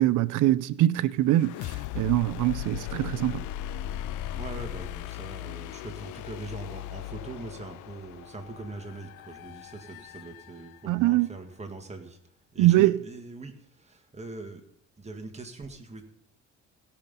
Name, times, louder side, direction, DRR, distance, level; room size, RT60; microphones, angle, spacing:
voice 1, 0.0-3.4 10.9-11.3 12.6-12.9, right 15 dB, 80° right, 0.5 m, -23 dB
sound 1, 1.3-11.1, left 14 dB, 80° left, 0.5 m, -38 dB
voice 2, 4.3-12.2 12.5-14.6 15.0-16.0, right 2 dB, 20° right, 1.9 m, -41 dB
17.0 x 5.7 x 5.3 m
cardioid pair, 90°, 30 cm